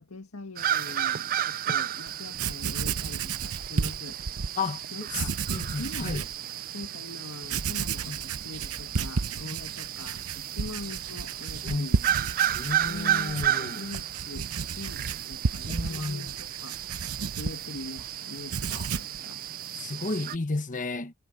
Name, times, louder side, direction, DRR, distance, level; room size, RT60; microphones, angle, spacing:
voice 1, 0.0-4.2 4.9-5.4 5.8-6.2 6.7-12.0 12.8-16.8 17.4-18.6 19.0-19.4, left 2 dB, 70° left, 1.9 m, -42 dB
sound 1, 0.6-20.4, right 11 dB, 40° right, 0.4 m, -33 dB
Writing, 2.1-2.2 2.3-4.5 5.1-6.4 6.8-6.9 7.4-18.1 18.4-19.2, right 5 dB, 90° right, 0.8 m, -32 dB
voice 2, 5.1-6.3 8.0-8.2 9.4-9.6 11.6-12.1 12.5-13.9 15.6-16.3 18.7-18.9 19.7-21.1, left 3 dB, 35° left, 1.1 m, -33 dB
head